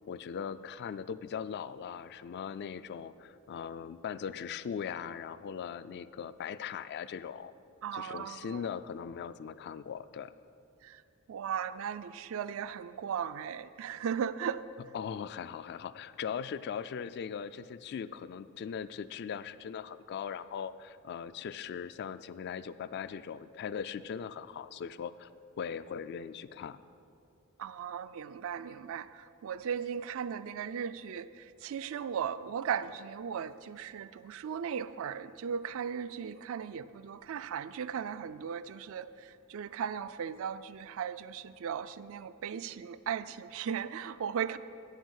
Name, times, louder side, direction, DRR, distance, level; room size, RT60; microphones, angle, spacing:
voice 1, 0.1-7.5 7.9-10.3 14.9-25.3 25.6-26.8, left 7 dB, 50° left, 14 dB, 0.3 m, -39 dB
voice 2, 7.8-8.6 10.8-11.0 11.3-14.6 27.6-44.6, right 7 dB, 65° right, 14 dB, 0.3 m, -37 dB
8.8 x 8.1 x 6.4 m, 2.5 s
head